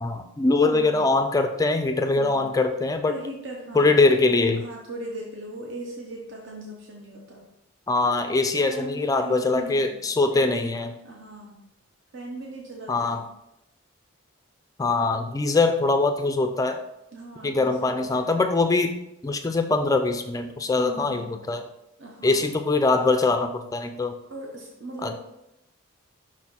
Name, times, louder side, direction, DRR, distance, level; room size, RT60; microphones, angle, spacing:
voice 1, 0.0-3.1 3.7-4.7 7.9-11.0 12.9-13.3 14.8-16.8 17.4-19.0 19.2-21.7 22.2-24.1 25.0-25.2, left 3 dB, 15° left, 7 dB, 0.3 m, -22 dB
voice 2, 0.7-1.1 2.1-2.5 3.1-4.2 4.6-7.4 8.4-10.1 10.3-10.6 11.0-11.6 12.1-13.2 17.1-18.5 20.8-21.4 22.0-22.5 24.3-25.2, right 2 dB, 60° right, -1 dB, 0.9 m, -39 dB
6.1 x 4.2 x 4.3 m, 0.85 s
head